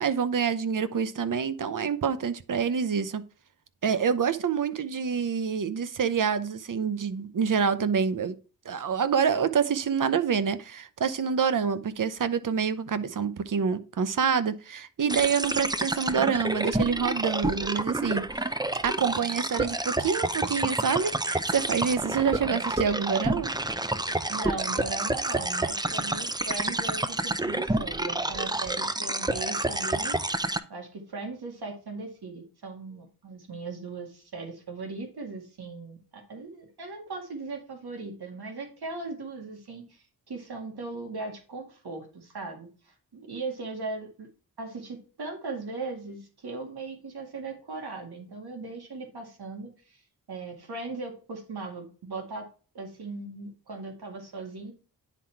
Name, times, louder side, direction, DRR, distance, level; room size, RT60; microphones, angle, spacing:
voice 1, 0.0-3.2 3.8-8.3 8.6-18.3 18.8-23.5, right 6 dB, 55° right, 0.8 m, -27 dB
sound 1, 15.1-30.6, right 2 dB, 10° right, 0.6 m, -29 dB
voice 2, 24.3-30.2 30.7-44.3 44.6-50.0 50.3-52.5 52.7-54.7, right 3 dB, 80° right, 2.1 m, -38 dB
9.9 x 4.0 x 4.5 m
cardioid pair, 60°, 38 cm